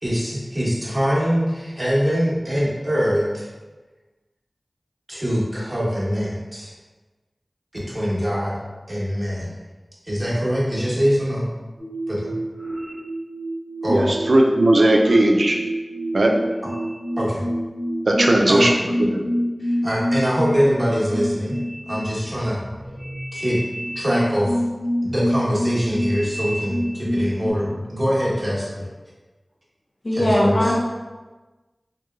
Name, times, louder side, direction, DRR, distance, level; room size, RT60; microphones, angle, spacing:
voice 1, 0.0-3.5 5.1-6.7 7.7-8.6 8.9-9.6 10.1-11.5 12.1-12.3 13.8-14.1 17.2-17.4 18.5-18.6 19.6-21.6 21.9-22.6 23.3-23.6 23.9-24.5 25.0-28.8 30.1-30.7, equal, 25° right, -7 dB, 0.9 m, -23 dB
sound 1, 11.8-27.5, equal, ahead, 1.1 m, -27 dB
voice 2, 13.9-15.6 16.1-16.4 18.1-19.2, right 1 dB, 80° right, 1 dB, 0.3 m, -17 dB
voice 3, 30.0-30.8, left 1 dB, 65° left, -5 dB, 0.4 m, -19 dB
2.9 x 2.2 x 2.3 m, 1.2 s
wide cardioid pair, 45°, 0 cm